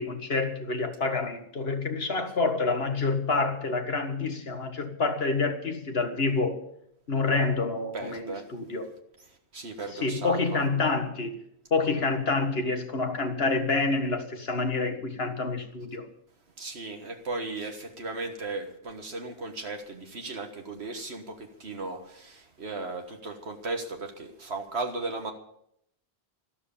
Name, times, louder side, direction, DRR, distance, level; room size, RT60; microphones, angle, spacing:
voice 1, 0.0-6.6 7.1-8.9 9.9-11.4 11.7-16.1, left 3 dB, 65° left, 6 dB, 1.9 m, -28 dB
voice 2, 7.9-8.5 9.5-10.4 16.6-25.3, right 3 dB, 75° right, 4 dB, 1.8 m, -36 dB
13.0 x 12.5 x 7.2 m, 0.71 s
omnidirectional pair, 1.1 m